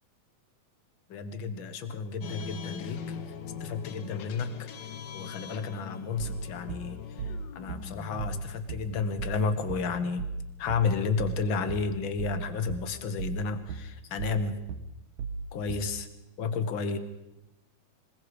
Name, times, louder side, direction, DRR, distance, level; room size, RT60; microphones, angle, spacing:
voice 1, 1.1-3.0 3.6-4.7 5.1-10.3 10.6-14.6 15.5-16.1 16.4-17.0, left 4 dB, 50° left, 10 dB, 1.9 m, -32 dB
sound 1, 2.2-9.6, left 7 dB, 65° left, 1.1 m, -42 dB
sound 2, 6.2-16.0, right 5 dB, 80° right, 2.5 m, -36 dB
27.0 x 20.5 x 5.2 m, 0.93 s
omnidirectional pair, 3.3 m